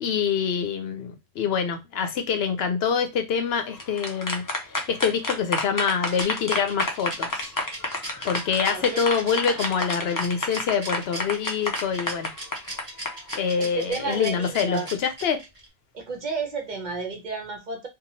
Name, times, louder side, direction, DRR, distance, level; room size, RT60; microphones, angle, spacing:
voice 1, 0.0-4.4 4.9-7.5 8.2-12.3 13.3-15.4, left 6 dB, 70° left, 0.8 m, -25 dB
sound 1, 3.6-13.4, left 2 dB, 25° left, 0.4 m, -29 dB
Rattle, 6.1-15.7, right 1 dB, 30° right, 1.3 m, -37 dB
voice 2, 8.6-9.0 9.3-9.7 13.6-14.9 15.9-17.9, right 4 dB, 50° right, 0.8 m, -32 dB
2.9 x 2.3 x 2.7 m
omnidirectional pair, 1.1 m